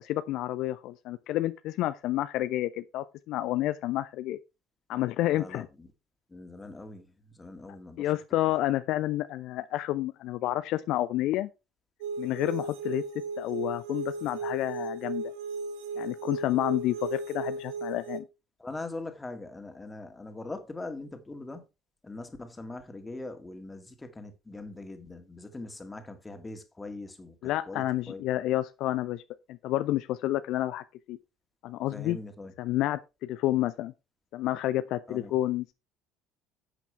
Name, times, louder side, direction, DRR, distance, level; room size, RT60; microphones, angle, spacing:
voice 1, 0.0-4.4 4.9-5.7 8.0-11.5 12.2-13.0 13.4-15.2 16.0-18.3 27.4-29.2 29.5-31.2 31.6-32.2 32.6-33.9 34.3-35.7, left 15 dB, 55° left, 0.4 m, -30 dB
voice 2, 5.3-5.9 6.3-8.1 18.6-21.6 22.0-28.2 31.9-32.5 35.1-35.3, left 2 dB, 15° left, 2.2 m, -42 dB
sound 1, 12.0-18.2, right 3 dB, 65° right, 1.3 m, -36 dB
11.0 x 8.3 x 3.4 m
figure-of-eight pair, 60°, 0 cm